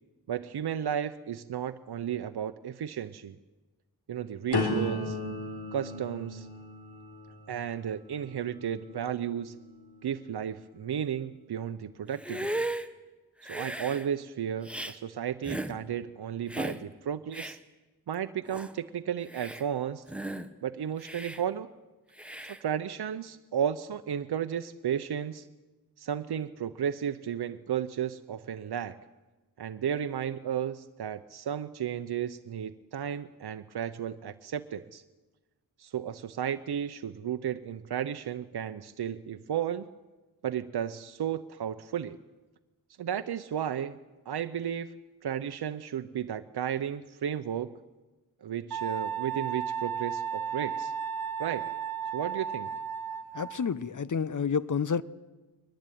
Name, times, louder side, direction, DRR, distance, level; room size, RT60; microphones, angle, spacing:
voice 1, 0.3-3.4 4.1-5.2 5.7-6.5 7.5-9.6 10.0-12.7 13.4-17.6 18.1-20.0 20.6-21.7 22.6-25.5 26.0-29.0 29.6-35.0 35.8-39.9 40.4-42.2 43.0-44.0 44.3-45.0 45.2-47.7 48.4-50.9 51.4-51.7 52.1-52.7, right 9 dB, 90° right, 9 dB, 0.7 m, -33 dB
sound 1, 4.5-10.4 10.9-11.3, left 2 dB, 90° left, 3.5 m, -36 dB
Hiss, 12.1-12.9 13.4-14.1 14.6-15.0 15.4-15.7 16.5-16.8 17.3-17.6 18.1-18.2 18.5-18.7 19.2-19.6 20.1-20.5 21.0-21.4 22.2-22.6, right 1 dB, 5° right, 1.2 m, -36 dB
Wind instrument woodwind instrument, 48.7-53.7, right 7 dB, 70° right, 1.2 m, -34 dB
voice 2, 53.3-55.0, left 6 dB, 50° left, 17 dB, 0.8 m, -29 dB
22.5 x 20.0 x 9.2 m, 1.2 s
wide cardioid pair, 95°, 38 cm